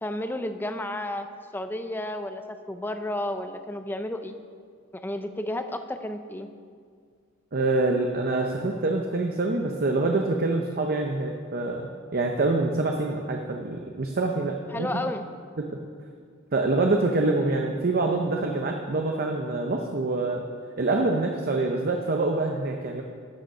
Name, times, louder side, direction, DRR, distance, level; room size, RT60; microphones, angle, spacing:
voice 1, 0.0-1.3 1.5-4.4 4.9-6.5 14.7-15.2, left 1 dB, 10° left, 8 dB, 0.5 m, -32 dB
voice 2, 7.5-15.0 15.7-15.8 16.5-20.4 20.8-23.0, right 2 dB, 45° right, 2 dB, 0.7 m, -26 dB
13.0 x 6.5 x 5.5 m, 2.1 s
head